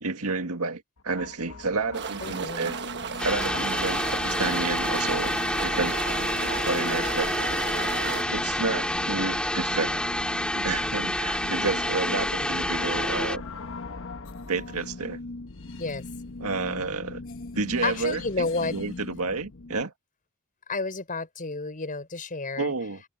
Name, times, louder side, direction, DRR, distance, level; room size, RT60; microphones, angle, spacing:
voice 1, 0.0-2.8 3.2-6.0 6.6-7.4 8.3-10.1 10.5-13.4 14.5-15.2 16.4-17.2 17.5-19.9 22.6-23.0, right 3 dB, 75° right, 2.0 m, -30 dB
sound 1, 1.0-19.8, left 3 dB, 60° left, 1.1 m, -40 dB
sound 2, 1.9-8.2, right 6 dB, 50° right, 1.2 m, -34 dB
voice 2, 2.2-2.7 15.8-16.1 17.8-18.7 20.7-22.7, left 3 dB, 40° left, 5.5 m, -30 dB
sound 3, 3.2-13.4, left 1 dB, 5° left, 2.3 m, -28 dB
head